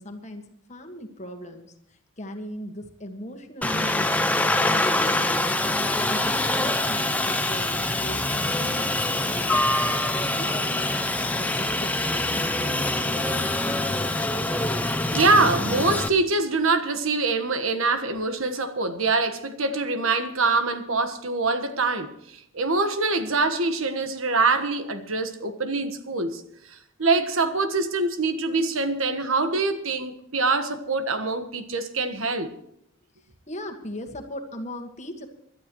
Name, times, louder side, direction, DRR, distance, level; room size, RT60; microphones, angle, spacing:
voice 1, 0.0-4.1 4.4-5.7 6.1-10.0 10.3-13.6 14.6-14.7 33.5-35.3, left 1 dB, 35° left, 1.6 m, -39 dB
Aircraft, 3.6-16.1, left 2 dB, 5° left, 0.7 m, -25 dB
voice 2, 15.1-22.1 22.5-26.4 27.0-32.5, right 3 dB, 75° right, 1.4 m, -24 dB
26.0 x 12.0 x 3.1 m
head